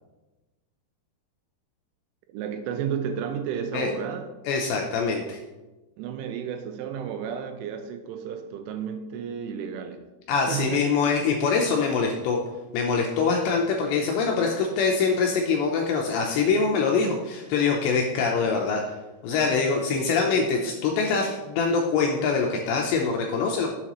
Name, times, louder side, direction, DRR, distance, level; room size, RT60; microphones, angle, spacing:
voice 1, 2.3-4.3 6.0-10.1 10.5-10.9, right 7 dB, 85° right, 7 dB, 2.9 m, -32 dB
voice 2, 4.5-5.4 10.3-12.4 12.7-18.8 19.2-23.7, left 5 dB, 80° left, 1 dB, 2.6 m, -24 dB
11.0 x 7.5 x 3.0 m, 1.1 s
omnidirectional pair, 5.8 m